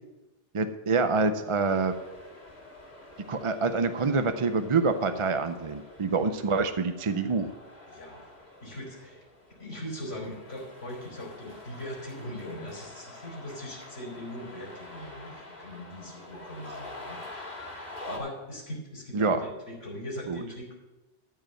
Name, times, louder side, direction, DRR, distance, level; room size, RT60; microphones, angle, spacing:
voice 1, 0.5-1.9 3.3-7.5 19.1-19.4 20.3-20.4, right 4 dB, 40° right, 9 dB, 0.5 m, -26 dB
sound 1, 1.6-18.2, left 2 dB, 50° left, 2.9 m, -46 dB
voice 2, 7.9-8.3 8.6-9.2 9.6-20.7, equal, 75° left, -2 dB, 3.9 m, -40 dB
13.5 x 5.4 x 7.6 m, 1.1 s
omnidirectional pair, 1.2 m